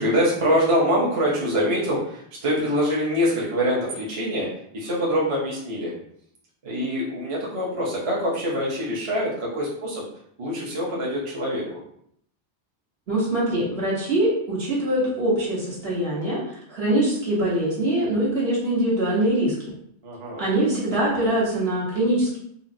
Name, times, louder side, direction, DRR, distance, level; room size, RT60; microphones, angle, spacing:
voice 1, 0.0-5.9 6.6-10.0 10.4-11.7 20.0-20.4, equal, 35° right, -5 dB, 0.7 m, -24 dB
voice 2, 13.1-19.5 20.4-22.4, right 1 dB, 60° right, -6 dB, 1.4 m, -23 dB
3.9 x 2.0 x 2.6 m, 0.69 s
omnidirectional pair, 1.2 m